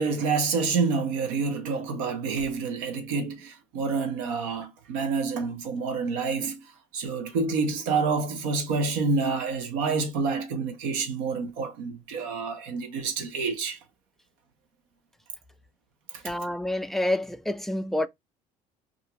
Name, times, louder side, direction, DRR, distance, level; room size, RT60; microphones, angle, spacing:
voice 1, 0.0-6.6 6.9-13.8, right 4 dB, 90° right, 0.7 m, -28 dB
voice 2, 16.2-18.1, left 1 dB, ahead, 0.3 m, -28 dB
2.5 x 2.4 x 2.8 m
supercardioid pair, 80°, 17 cm